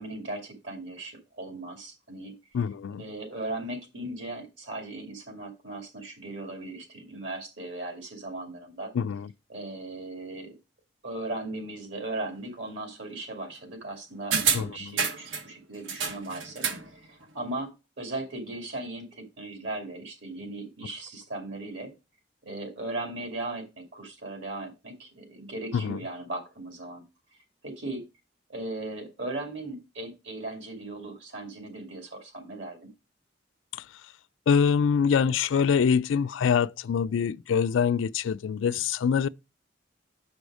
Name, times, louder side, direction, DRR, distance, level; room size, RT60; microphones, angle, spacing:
voice 1, 0.0-2.3 3.0-8.9 9.5-10.5 11.0-17.7 18.0-21.9 22.4-27.0 27.6-28.0 28.5-32.8, right 2 dB, 70° right, 2.5 m, -37 dB
voice 2, 2.5-3.0 8.9-9.3 14.5-15.0 25.7-26.0 34.5-39.3, left 6 dB, 80° left, 0.3 m, -24 dB
sound 1, 14.3-15.5 15.9-16.9 17.2-17.3, right 6 dB, 90° right, 1.1 m, -28 dB
7.0 x 5.2 x 4.8 m
head